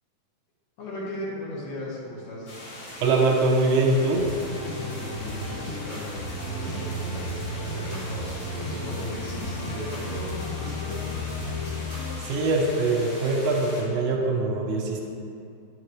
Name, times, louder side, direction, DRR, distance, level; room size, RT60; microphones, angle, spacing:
voice 1, 0.8-2.5 4.8-11.0, left 1 dB, 75° left, -7 dB, 3.4 m, -37 dB
sound 1, 2.5-13.8, left 1 dB, 55° left, 3.4 m, -41 dB
voice 2, 3.0-4.2 12.2-15.0, right 2 dB, 70° right, -1 dB, 1.9 m, -23 dB
sound 2, 4.1-12.1, left 1 dB, 35° left, 1.8 m, -33 dB
10.5 x 7.5 x 3.3 m, 2.5 s
omnidirectional pair, 4.5 m